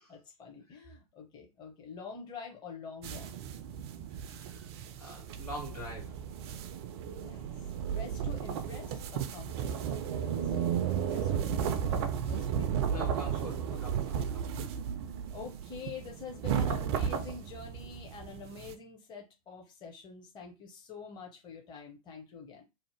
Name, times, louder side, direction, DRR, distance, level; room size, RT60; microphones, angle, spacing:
voice 1, 0.1-3.3 7.2-9.8 10.2-13.8 15.3-22.6, left 5 dB, 20° left, 0.8 m, -47 dB
sound 1, 3.0-18.7, right 8 dB, 45° right, 0.4 m, -34 dB
voice 2, 4.3-4.6 5.0-6.2 12.9-14.6, equal, 90° left, 1.5 m, -44 dB
2.7 x 2.0 x 3.2 m
figure-of-eight pair, 95°, 19 cm